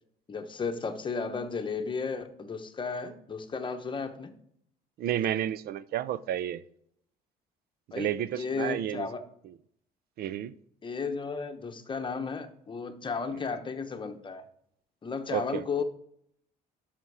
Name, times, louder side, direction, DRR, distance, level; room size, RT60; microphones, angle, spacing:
voice 1, 0.3-4.3 7.9-9.2 10.8-14.4 15.0-15.8, left 5 dB, 30° left, 8 dB, 1.0 m, -34 dB
voice 2, 5.0-6.6 7.9-9.1 10.2-10.5 15.3-15.6, right 11 dB, 65° right, 16 dB, 0.5 m, -31 dB
12.5 x 5.8 x 4.8 m, 0.70 s
cardioid pair, 110°, 17 cm